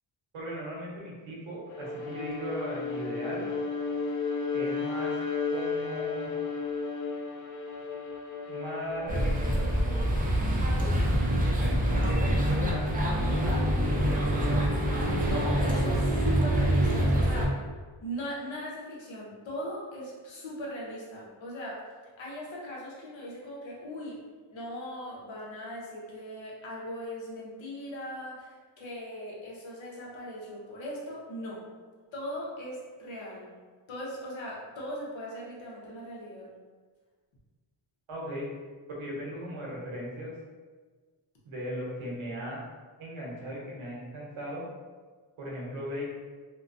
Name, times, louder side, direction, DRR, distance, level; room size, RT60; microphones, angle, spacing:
voice 1, 0.3-3.4 4.5-5.1 5.5-6.3 8.5-10.0 10.8-10.9 11.6-12.9 13.4-14.7 38.1-38.5 38.9-40.3 41.4-42.6 43.0-44.7 45.4-46.1, equal, 80° right, -4 dB, 0.9 m, -38 dB
Bowed string instrument, 1.7-10.1, left 4 dB, 40° left, 0.4 m, -34 dB
sound 1, 9.1-17.5, equal, 20° right, 0.5 m, -25 dB
voice 2, 15.3-17.7 18.0-21.8 22.2-24.2 24.5-31.6 32.1-33.5 33.9-36.5, equal, 70° left, -4 dB, 0.9 m, -39 dB
2.7 x 2.2 x 2.5 m, 1.5 s
cardioid pair, 65°, 49 cm